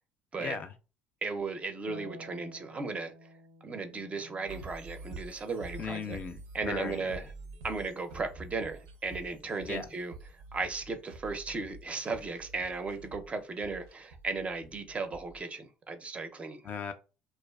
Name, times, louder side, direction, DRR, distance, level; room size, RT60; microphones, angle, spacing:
voice 1, 0.4-0.7 5.8-7.1 9.7-9.9 16.6-16.9, left 6 dB, 40° left, 0.4 m, -37 dB
voice 2, 1.2-3.1 3.6-6.2 6.5-7.2 7.6-16.6, right 4 dB, 30° right, 0.4 m, -36 dB
Harp, 1.9-8.4 10.0-11.0, equal, 90° left, 0.5 m, -55 dB
sound 1, 4.5-15.4, right 2 dB, 80° right, 0.5 m, -48 dB
2.4 x 2.3 x 2.2 m
supercardioid pair, 80°, 4 cm